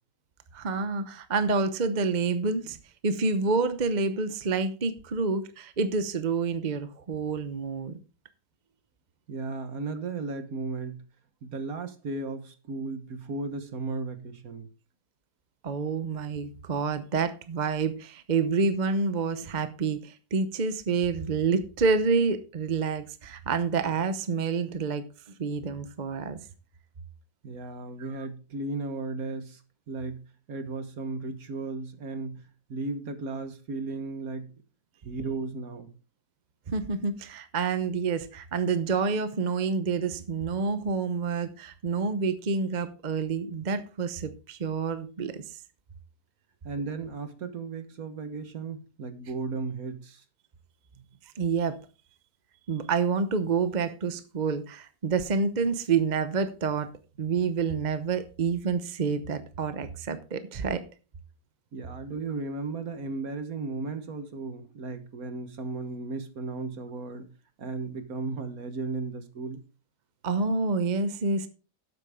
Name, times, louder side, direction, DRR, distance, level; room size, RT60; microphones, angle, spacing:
voice 1, 0.5-2.8 3.0-8.0 15.6-25.0 25.4-26.4 36.7-45.4 51.4-51.8 52.7-56.9 57.2-60.8 70.2-71.5, right 4 dB, 40° right, 0.7 m, -28 dB
voice 2, 9.3-11.0 11.4-14.7 27.4-29.6 29.9-30.2 30.5-34.5 35.0-35.9 46.6-50.2 61.7-67.3 67.6-69.6, right 3 dB, 60° right, 1.7 m, -35 dB
12.5 x 8.1 x 3.6 m
omnidirectional pair, 1.8 m